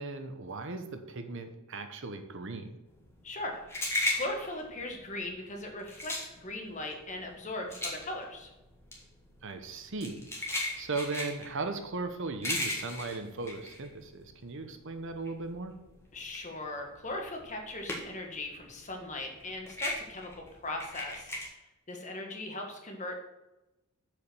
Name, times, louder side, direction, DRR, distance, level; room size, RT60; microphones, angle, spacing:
voice 1, 0.0-2.7 9.4-10.5 10.8-15.8, right 3 dB, 55° right, 7 dB, 0.8 m, -37 dB
sound 1, 3.0-14.6 14.9-18.4 18.6-21.5, left 1 dB, 10° left, 1.5 m, -36 dB
voice 2, 3.2-8.5 16.1-21.6 21.9-23.2, left 2 dB, 35° left, 2 dB, 1.4 m, -39 dB
7.0 x 5.0 x 6.6 m, 0.99 s
head